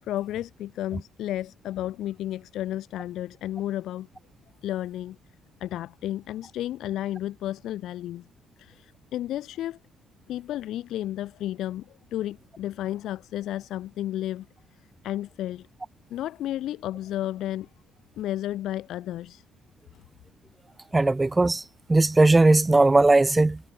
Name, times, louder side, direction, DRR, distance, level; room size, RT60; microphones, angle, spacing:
voice 1, 0.0-4.1 4.6-5.2 5.6-8.3 8.6-9.8 10.3-14.5 14.7-15.7 16.1-17.7 18.2-19.4 19.9-20.0, left 13 dB, 70° left, 6.9 m, -32 dB
voice 2, 20.9-21.6 21.9-23.6, right 2 dB, 15° right, 0.8 m, -18 dB
supercardioid pair, 85°, 0 cm